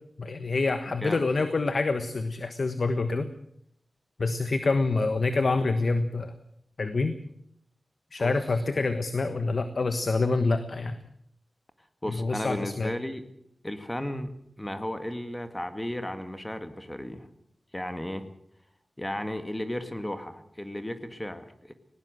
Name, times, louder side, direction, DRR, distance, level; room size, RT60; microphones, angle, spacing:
voice 1, 0.2-3.3 4.2-6.3 6.8-7.2 8.1-11.0 12.1-12.9, left 3 dB, 55° left, 10 dB, 1.3 m, -26 dB
voice 2, 12.0-13.2 13.6-14.3 14.6-17.3 17.7-18.3 19.0-21.7, left 1 dB, 10° left, 9 dB, 1.9 m, -34 dB
19.0 x 18.5 x 7.7 m, 0.71 s
wide cardioid pair, 115°, 0 cm